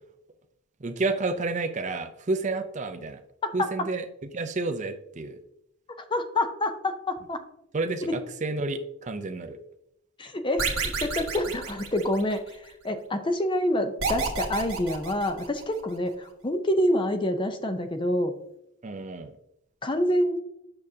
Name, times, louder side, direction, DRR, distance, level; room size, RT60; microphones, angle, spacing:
voice 1, 0.8-3.2 3.5-4.0 4.3-5.4 7.7-9.6 18.8-19.3, right 3 dB, 35° right, 8 dB, 0.5 m, -30 dB
voice 2, 6.1-7.4 8.1-8.2 10.2-18.3 19.8-20.4, left 1 dB, 20° left, 8 dB, 0.6 m, -27 dB
sound 1, 10.6-12.5 14.0-15.8, right 4 dB, 65° right, 1.5 m, -30 dB
8.7 x 6.3 x 2.7 m, 0.80 s
head